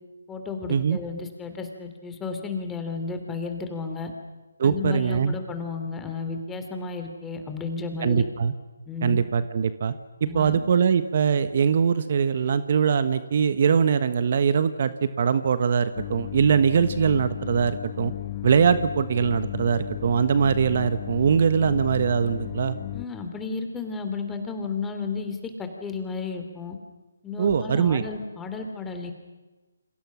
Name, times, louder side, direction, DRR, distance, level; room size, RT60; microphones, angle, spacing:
voice 1, 0.3-4.1 4.6-8.3 8.9-9.2 10.3-10.6 22.9-26.8 27.2-29.1, left 4 dB, 10° left, 5 dB, 3.2 m, -33 dB
voice 2, 4.6-5.3 8.0-8.5 9.0-9.9 10.2-18.1 18.4-22.8 27.4-28.0, right 6 dB, 45° right, 12 dB, 1.3 m, -22 dB
sound 1, 16.0-23.1, left 15 dB, 30° left, 1.0 m, -35 dB
29.5 x 26.5 x 6.4 m, 1.2 s
figure-of-eight pair, 150°, 0 cm